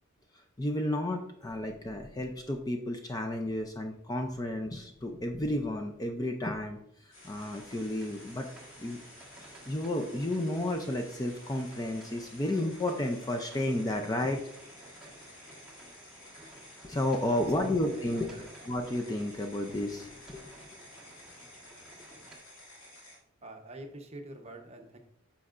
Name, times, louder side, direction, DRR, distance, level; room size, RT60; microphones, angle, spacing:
voice 1, 0.6-8.5 8.8-9.0 9.4-14.4 16.8-20.5, left 1 dB, 15° left, 3 dB, 0.5 m, -32 dB
sound 1, 7.1-23.2, left 1 dB, 70° left, 2.4 m, -52 dB
sound 2, 7.4-22.4, right 2 dB, 5° right, 1.4 m, -55 dB
voice 2, 17.3-18.5 23.4-25.0, right 1 dB, 30° right, 3 dB, 0.9 m, -46 dB
9.6 x 5.8 x 2.5 m, 0.71 s
head